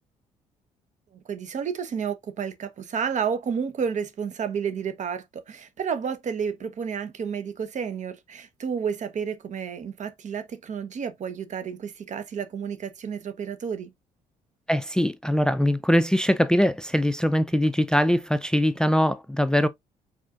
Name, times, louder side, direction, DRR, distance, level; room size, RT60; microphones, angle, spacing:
voice 1, 1.3-13.9, right 7 dB, 55° right, 1.1 m, -31 dB
voice 2, 14.7-19.7, equal, 5° left, 0.5 m, -22 dB
4.8 x 4.3 x 2.5 m
supercardioid pair, 60°, 15 cm